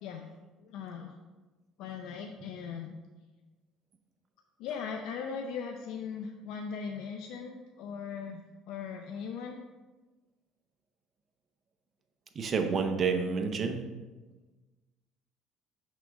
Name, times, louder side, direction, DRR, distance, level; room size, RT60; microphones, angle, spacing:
voice 1, 0.6-1.1 1.8-2.9 4.6-9.6, left 6 dB, 75° left, 3 dB, 0.5 m, -39 dB
voice 2, 12.3-13.8, right 5 dB, 35° right, 5 dB, 0.7 m, -29 dB
6.0 x 3.6 x 5.1 m, 1.2 s
cardioid pair, 115°, 0 cm